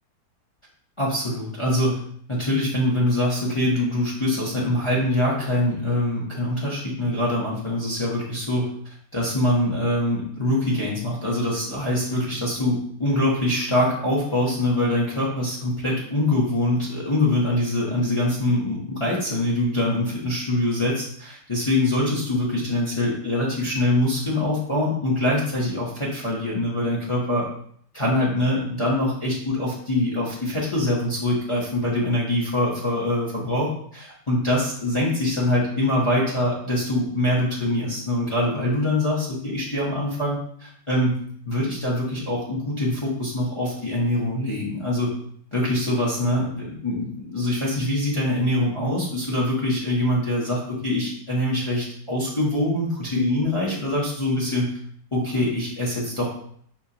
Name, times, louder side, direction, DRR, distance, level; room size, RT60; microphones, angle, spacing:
voice 1, 1.0-2.0 2.3-8.7 9.1-27.4 27.9-41.2 41.5-45.1 45.5-54.7 55.1-56.3, left 1 dB, 30° left, -6 dB, 0.6 m, -24 dB
4.7 x 3.3 x 2.8 m, 0.62 s
omnidirectional pair, 2.0 m